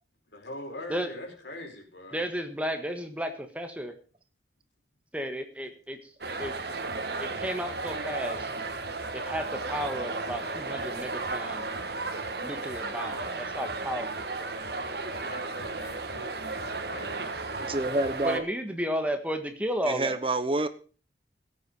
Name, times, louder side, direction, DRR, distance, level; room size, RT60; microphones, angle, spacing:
voice 1, 0.3-2.2 15.1-17.5, left 1 dB, 85° left, 2 dB, 5.0 m, -43 dB
voice 2, 2.1-3.9 5.1-6.1 6.4-6.5 7.2-8.5 9.1-11.6 12.4-14.5 18.2-20.2, equal, 10° right, 6 dB, 1.5 m, -33 dB
sound 1, 6.2-18.4, right 3 dB, 65° right, 1.7 m, -34 dB
voice 3, 17.6-18.5 19.8-20.7, right 2 dB, 30° right, 12 dB, 1.0 m, -28 dB
16.5 x 8.5 x 5.4 m, 0.38 s
head